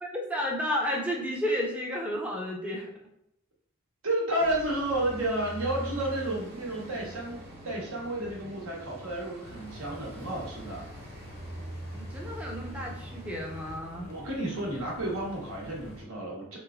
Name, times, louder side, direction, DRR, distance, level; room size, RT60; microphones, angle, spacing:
voice 1, 0.0-2.9 11.9-14.1, equal, 5° right, -2 dB, 0.3 m, -32 dB
voice 2, 4.0-10.9 14.1-16.6, right 1 dB, 85° right, -2 dB, 1.0 m, -31 dB
sound 1, 4.4-13.8, right 1 dB, 50° right, 0.8 m, -43 dB
sound 2, 9.4-16.0, left 1 dB, 85° left, 0.6 m, -47 dB
3.3 x 3.0 x 2.4 m, 0.76 s
head